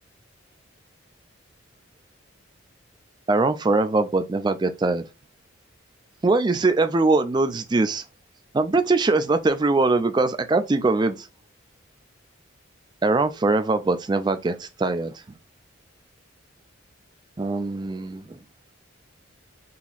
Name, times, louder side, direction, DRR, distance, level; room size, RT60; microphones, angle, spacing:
voice 1, 3.3-5.0 6.2-8.0 8.5-11.3 13.0-15.1 17.4-18.4, right 3 dB, 20° right, 0.3 m, -22 dB
4.0 x 2.8 x 2.4 m
head